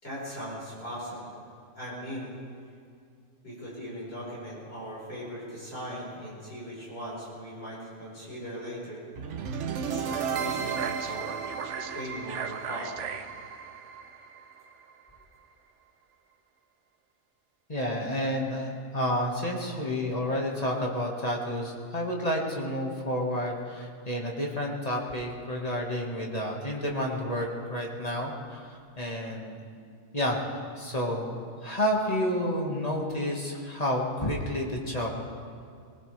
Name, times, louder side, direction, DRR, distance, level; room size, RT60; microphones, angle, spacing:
voice 1, 0.0-1.3 1.8-2.3 3.4-9.0 9.8-11.3 11.9-13.1, equal, 50° left, -7 dB, 5.0 m, -39 dB
sound 1, 9.2-15.2, right 6 dB, 70° right, 1.1 m, -34 dB
voice 2, 17.7-28.7 29.0-29.6 30.1-35.2, equal, 30° left, -1 dB, 1.8 m, -30 dB
20.0 x 19.5 x 3.3 m, 2.3 s
omnidirectional pair, 1.3 m